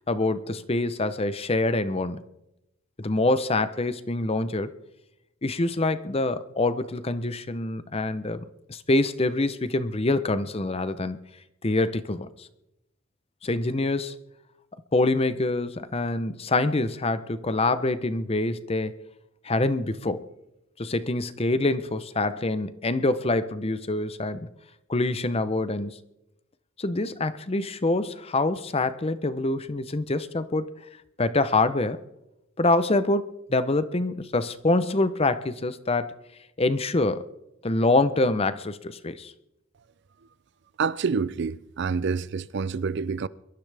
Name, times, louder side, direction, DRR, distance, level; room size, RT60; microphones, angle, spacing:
voice 1, 0.1-2.2 3.0-4.7 5.4-11.2 11.6-12.5 13.4-14.2 14.9-18.9 19.4-20.2 20.8-24.5 24.9-26.0 26.8-30.7 31.2-32.0 32.6-36.1 36.6-37.2 37.6-39.3, left 2 dB, 30° left, 0.7 m, -25 dB
voice 2, 40.8-43.3, right 5 dB, 55° right, 0.4 m, -27 dB
22.5 x 13.5 x 3.4 m
head